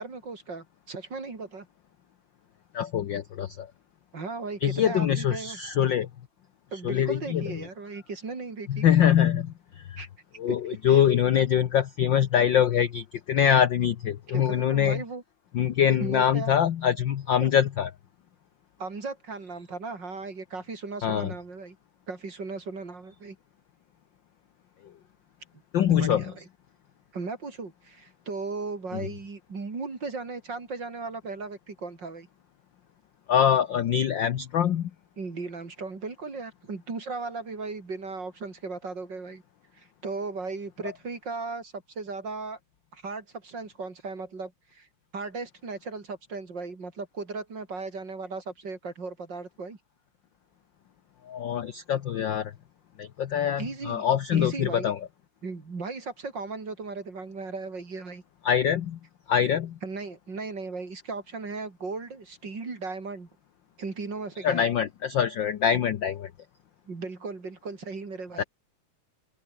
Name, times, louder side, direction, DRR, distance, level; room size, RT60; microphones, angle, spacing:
voice 1, 0.0-1.7 4.1-5.6 6.7-8.9 10.0-10.1 10.5-11.0 14.3-15.2 16.0-16.6 17.4-17.5 18.8-21.8 22.1-23.4 25.9-26.4 27.1-32.3 35.2-39.4 39.8-42.6 42.9-44.9 45.1-49.8 53.6-54.0 54.3-54.9 55.4-58.2 59.8-63.3 63.8-64.7 65.7-65.8 66.9-68.4, right 4 dB, 35° right, 3.9 m, -36 dB
voice 2, 2.7-3.7 4.6-6.1 6.8-7.4 8.7-10.0 10.4-15.0 15.5-17.9 21.0-21.3 25.7-26.2 28.9-29.0 33.3-34.9 51.3-52.5 53.0-55.0 58.4-59.0 59.3-59.8 64.4-66.3 68.4-68.5, left 9 dB, 65° left, 1.1 m, -24 dB
open air
omnidirectional pair, 3.3 m